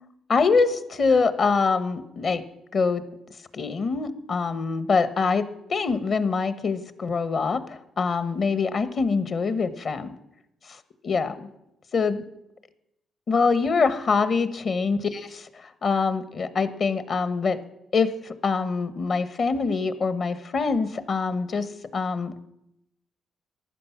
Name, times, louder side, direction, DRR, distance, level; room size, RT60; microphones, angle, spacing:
voice 1, 0.3-2.4 2.7-3.0 3.5-10.1 11.0-11.5 11.9-12.2 13.3-17.6 17.9-22.3, left 4 dB, 50° left, 13 dB, 1.3 m, -24 dB
15.0 x 11.5 x 5.9 m, 0.84 s
cardioid pair, 90°, 0 cm